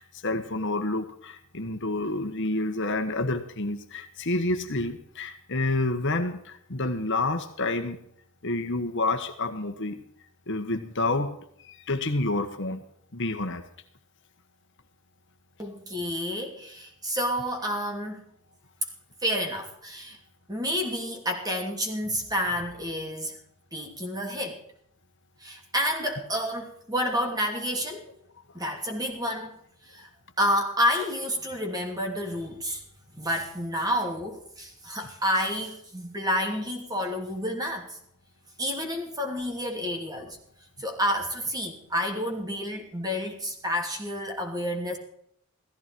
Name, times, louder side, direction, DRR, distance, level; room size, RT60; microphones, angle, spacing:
voice 1, 0.0-8.0 8.4-10.0 10.5-11.3 11.6-12.8 13.1-13.6, left 2 dB, 55° left, 7 dB, 1.5 m, -29 dB
voice 2, 15.6-18.2 19.2-20.2 20.5-23.4 23.7-24.6 25.4-28.1 28.5-30.1 30.4-32.8 33.1-38.0 38.6-40.4 40.8-45.0, equal, 15° right, 3 dB, 2.7 m, -29 dB
16.0 x 14.5 x 4.6 m, 0.67 s
head